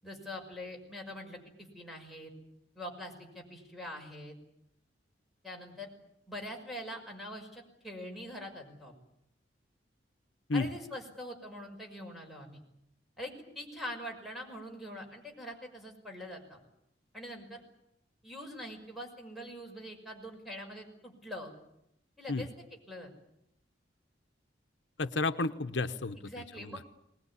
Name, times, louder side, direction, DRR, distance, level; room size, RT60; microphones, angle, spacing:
voice 1, 0.0-2.3 2.8-4.4 5.4-5.9 6.3-8.9 10.5-12.6 13.2-16.6 17.1-17.6 18.2-21.5 22.2-22.5 22.9-23.1 26.2-26.9, left 1 dB, ahead, 1 dB, 6.0 m, -44 dB
voice 2, 25.0-26.8, left 3 dB, 75° left, 9 dB, 1.0 m, -32 dB
22.0 x 20.5 x 10.0 m, 0.79 s
head